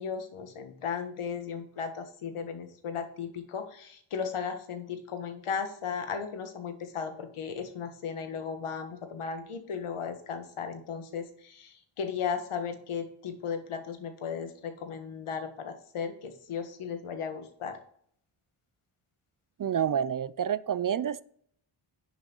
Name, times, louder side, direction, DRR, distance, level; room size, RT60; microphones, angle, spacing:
voice 1, 0.0-17.8, left 6 dB, 80° left, 8 dB, 1.7 m, -36 dB
voice 2, 19.6-21.2, right 8 dB, 40° right, 18 dB, 0.5 m, -28 dB
10.5 x 6.6 x 4.0 m, 0.63 s
cardioid pair, 70°, 50 cm